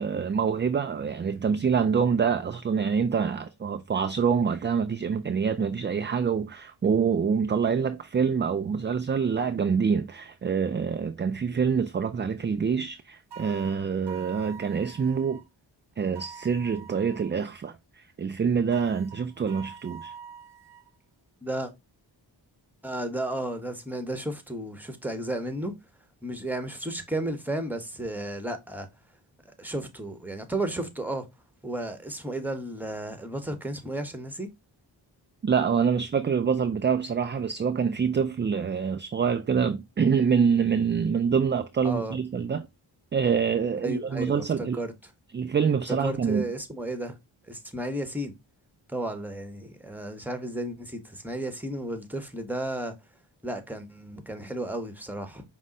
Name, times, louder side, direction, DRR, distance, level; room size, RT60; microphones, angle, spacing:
voice 1, 0.0-15.4 16.0-20.1 35.4-42.7 43.1-44.8 45.3-46.5, right 6 dB, 25° right, 0.3 m, -26 dB
sound 1, 13.3-15.4 16.1-17.4 18.7-20.9, right 6 dB, 55° right, 0.7 m, -45 dB
voice 2, 21.4-21.7 22.8-25.7 26.2-28.9 29.6-31.3 31.6-34.5 41.8-42.2 43.8-44.9 45.9-47.2 47.5-48.3 48.9-53.0 53.4-55.4, right 1 dB, 5° right, 1.0 m, -33 dB
5.4 x 2.1 x 3.6 m
cardioid pair, 40°, 49 cm